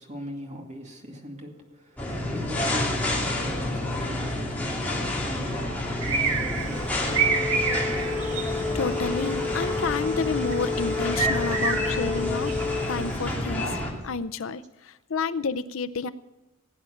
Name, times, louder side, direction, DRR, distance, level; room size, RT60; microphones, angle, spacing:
voice 1, 0.0-8.2 14.0-14.3, equal, 35° right, 2 dB, 2.3 m, -41 dB
sound 1, 2.0-13.9, left 1 dB, 5° left, 2.8 m, -29 dB
sound 2, 6.0-13.4, right 5 dB, 90° right, 1.8 m, -30 dB
sound 3, 7.0-12.8, left 5 dB, 10° right, 5.4 m, -31 dB
voice 2, 8.5-12.5 12.9-16.1, left 4 dB, 65° left, 13 dB, 0.6 m, -30 dB
17.5 x 9.1 x 6.5 m, 1.0 s
head